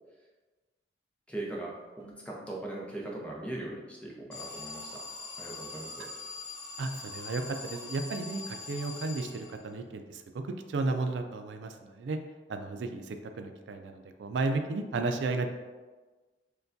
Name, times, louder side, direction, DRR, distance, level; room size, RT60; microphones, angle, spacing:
voice 1, 1.3-5.0 5.4-6.1, right 2 dB, 5° left, -3 dB, 0.6 m, -40 dB
sound 1, 2.0-5.3, left 2 dB, 45° right, 0.9 m, -62 dB
Alarm, 4.3-9.9, left 3 dB, 70° left, 1.0 m, -43 dB
voice 2, 6.8-10.4 10.7-12.2 12.5-15.5, right 3 dB, 80° right, 6 dB, 0.4 m, -33 dB
6.6 x 2.3 x 2.6 m, 1.3 s
head